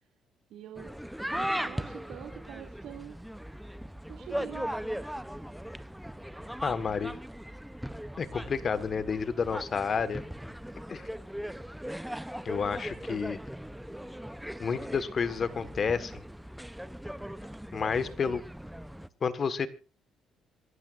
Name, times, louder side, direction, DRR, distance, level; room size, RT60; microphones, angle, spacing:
voice 1, 0.5-0.9 1.3-3.2 4.1-4.8, right 10 dB, 75° right, 3 dB, 2.6 m, -45 dB
sound 1, 0.7-19.1, equal, ahead, 0.7 m, -39 dB
voice 2, 6.6-7.2 8.2-10.2 10.9-11.1 12.4-13.4 14.6-16.2 17.7-18.4 19.2-19.7, left 6 dB, 40° left, 12 dB, 1.5 m, -30 dB
26.5 x 12.0 x 2.6 m, 0.34 s
cardioid pair, 95°, 0 cm